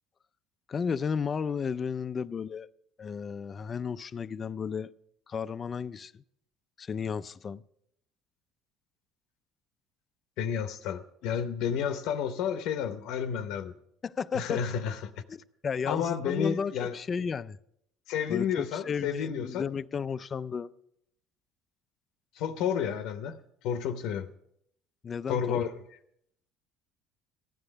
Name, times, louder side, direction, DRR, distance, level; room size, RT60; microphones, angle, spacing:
voice 1, 0.7-2.7 3.0-4.9 5.3-6.2 6.8-7.6 14.0-14.6 15.3-17.6 18.3-20.7 25.0-25.6, left 6 dB, 35° left, 0.4 m, -33 dB
voice 2, 10.4-13.7 14.3-15.1 15.9-16.9 18.1-19.7 22.4-23.4 23.6-24.3 25.3-25.7, left 8 dB, 75° left, 0.7 m, -31 dB
14.5 x 9.8 x 5.2 m
cardioid pair, 110°, 0 cm